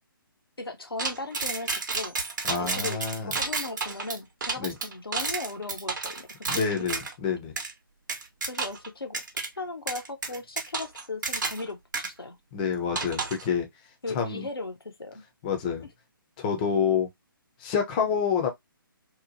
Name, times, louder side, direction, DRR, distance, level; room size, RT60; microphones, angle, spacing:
voice 1, 0.6-2.2 2.6-3.0 3.3-6.9 8.5-9.2 9.6-12.4 14.0-15.2, left 3 dB, 85° left, 0.7 m, -37 dB
sound 1, 1.0-7.1 7.6-7.7 8.1-8.9 9.1-9.5 9.9-11.7 11.9-12.1 13.0-13.5, right 4 dB, 55° right, 0.8 m, -31 dB
voice 2, 2.5-3.3 4.6-4.8 6.5-7.6 12.5-13.7 14.1-14.5 15.4-15.9 16.4-17.1 17.6-18.5, left 7 dB, 20° left, 0.5 m, -27 dB
2.9 x 2.1 x 2.5 m
figure-of-eight pair, 140°, 12 cm